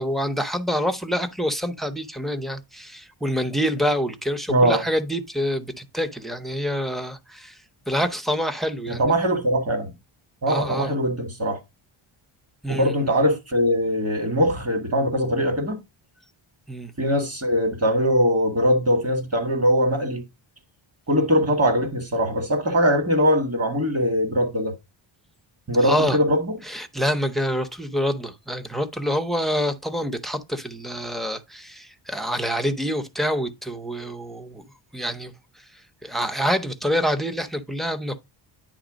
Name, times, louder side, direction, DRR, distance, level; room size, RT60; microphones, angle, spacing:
voice 1, 0.0-7.6 7.9-9.0 10.5-10.9 12.6-12.9 16.7-16.9 25.8-26.2 26.6-34.6 34.9-35.3 36.0-38.2, equal, ahead, 0.6 m, -26 dB
voice 2, 4.5-4.8 8.9-9.9 10.4-11.6 12.7-15.8 17.0-20.2 21.1-24.7 25.7-26.6, equal, 30° right, 1.9 m, -21 dB
10.0 x 3.4 x 5.0 m
wide cardioid pair, 165°, 48 cm